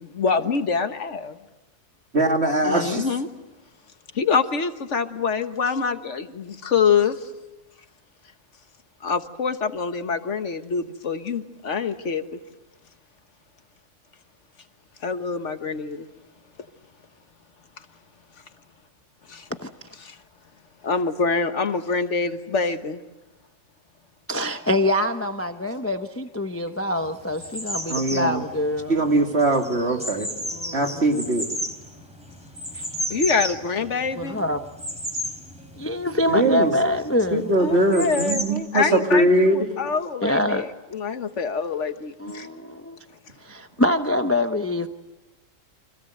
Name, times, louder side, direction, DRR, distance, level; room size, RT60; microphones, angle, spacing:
voice 1, 0.2-1.4 2.6-3.3 4.1-7.1 9.0-12.2 15.0-16.1 19.3-19.4 20.0-20.1 20.8-23.0 33.1-34.4 37.6-42.5, left 5 dB, 65° left, 9 dB, 1.6 m, -25 dB
voice 2, 2.1-3.1 27.9-28.4 28.9-30.3 30.7-31.5 36.3-36.7 37.3-39.7, right 1 dB, 55° right, 3 dB, 2.8 m, -21 dB
voice 3, 24.3-29.0 30.5-31.0 32.7-32.9 34.1-34.6 35.7-37.5 40.2-40.6 42.2-43.0 43.4-44.9, left 1 dB, 10° left, 7 dB, 0.8 m, -25 dB
sound 1, 27.0-38.5, equal, 5° right, 3.8 m, -33 dB
30.0 x 25.5 x 7.9 m, 1.1 s
omnidirectional pair, 1.3 m